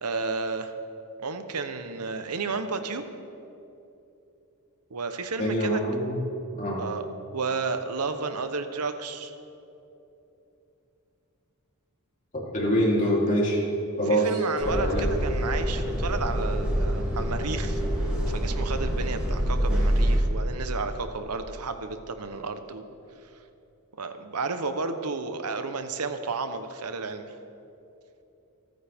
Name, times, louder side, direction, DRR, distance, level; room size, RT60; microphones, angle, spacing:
voice 1, 0.0-0.7 1.2-3.0 4.9-5.8 6.8-7.1 7.3-9.3 14.1-22.9 24.0-27.3, right 4 dB, 90° right, 9 dB, 0.9 m, -32 dB
voice 2, 5.4-6.2 6.6-6.8 12.5-13.6 14.0-14.3 14.7-15.1, equal, 35° left, -6 dB, 3.5 m, -24 dB
sound 1, 14.6-20.2, equal, 5° right, 3.2 m, -26 dB
28.0 x 9.4 x 3.6 m, 2.9 s
head